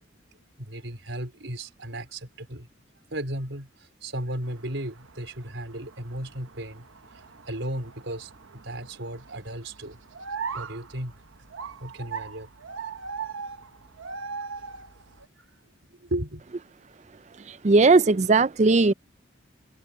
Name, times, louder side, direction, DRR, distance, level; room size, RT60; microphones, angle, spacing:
voice 1, 0.6-2.7 3.1-6.9 7.4-8.3 8.6-10.0 10.5-11.2 11.8-12.5 15.4-15.5 16.0-16.4, right 1 dB, 70° right, 4.8 m, -35 dB
sound 1, 4.4-15.3, right 5 dB, 85° right, 1.1 m, -40 dB
voice 2, 17.5-18.9, right 3 dB, 35° right, 0.4 m, -18 dB
head